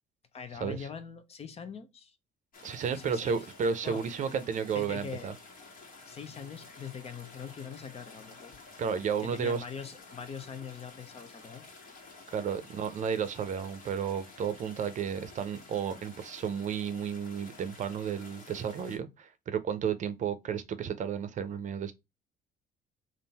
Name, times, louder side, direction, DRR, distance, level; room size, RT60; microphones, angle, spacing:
voice 1, 0.3-2.2 2.9-3.4 3.8-4.1 4.7-5.3 6.1-8.6 9.2-11.7, left 6 dB, 35° left, 0.7 m, -42 dB
sound 1, 2.5-19.0, left 3 dB, 55° left, 1.6 m, -51 dB
voice 2, 2.6-5.3 8.8-9.6 12.3-21.9, right 7 dB, 45° right, 0.6 m, -32 dB
3.6 x 2.6 x 4.1 m
cardioid pair, 110°, 17 cm